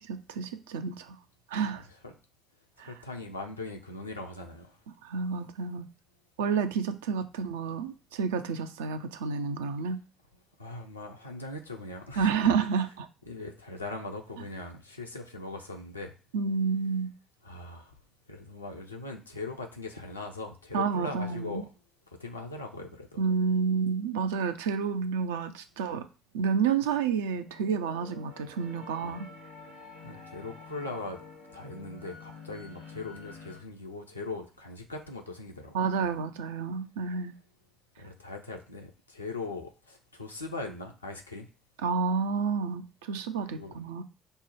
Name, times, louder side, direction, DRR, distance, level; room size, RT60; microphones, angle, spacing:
voice 1, 0.0-1.2 1.5-1.8 2.8-2.9 5.0-5.9 6.4-10.0 12.2-13.1 16.3-17.1 20.7-21.6 23.2-26.1 26.3-29.3 35.7-37.3 41.8-44.0, right 5 dB, 70° right, 0.4 m, -30 dB
voice 2, 2.8-4.7 10.6-12.3 13.3-16.1 17.4-17.9 18.3-21.7 22.2-23.2 29.0-29.2 30.0-31.2 31.5-35.8 38.0-41.5 43.5-43.8, left 2 dB, 85° left, 0.5 m, -40 dB
sound 1, 27.3-33.6, left 4 dB, 90° right, 0.9 m, -48 dB
5.4 x 2.1 x 4.5 m
figure-of-eight pair, 45°, 0 cm